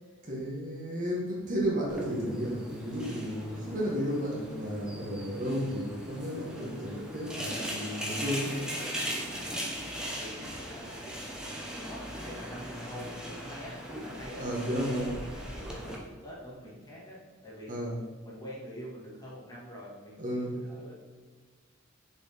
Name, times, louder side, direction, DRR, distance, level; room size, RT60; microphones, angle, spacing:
voice 1, 0.2-8.6 14.4-15.1 17.7-18.0 20.2-20.6, equal, 40° right, -4 dB, 1.5 m, -33 dB
sound 1, 1.9-16.0, equal, 5° right, 0.9 m, -39 dB
voice 2, 9.3-9.7 10.1-11.3 11.8-17.8 18.2-20.9, equal, 20° left, -7 dB, 2.2 m, -46 dB
6.6 x 4.7 x 5.1 m, 1.5 s
head